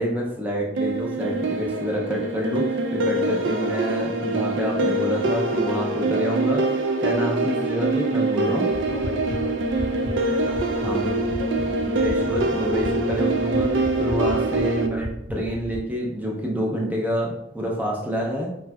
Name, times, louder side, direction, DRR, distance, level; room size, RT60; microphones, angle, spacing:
voice 1, 0.0-8.7 10.8-11.2 11.6-18.5, equal, 10° right, -3 dB, 0.4 m, -27 dB
sound 1, 0.8-14.9, right 2 dB, 75° right, 0.3 m, -24 dB
sound 2, 8.7-15.8, equal, 60° right, 0.8 m, -35 dB
voice 2, 8.8-11.0 11.4-11.7 14.1-14.4, left 2 dB, 75° left, 5 dB, 0.4 m, -38 dB
3.1 x 2.6 x 2.2 m, 0.82 s
head